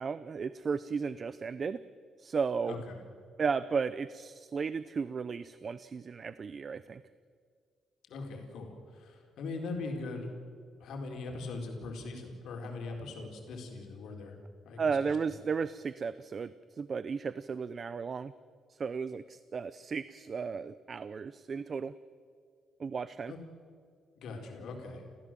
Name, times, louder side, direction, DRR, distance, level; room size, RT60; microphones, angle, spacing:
voice 1, 0.0-1.8 2.2-2.8 3.4-7.0 14.8-18.3 18.7-22.0 22.8-23.3, right 5 dB, 35° right, 15 dB, 0.6 m, -34 dB
voice 2, 2.6-3.0 8.1-10.3 10.8-14.4 14.6-15.1 23.3-23.4 24.2-25.0, left 3 dB, 75° left, 2 dB, 4.1 m, -41 dB
29.5 x 15.0 x 7.5 m, 2.1 s
cardioid pair, 135°, 0 cm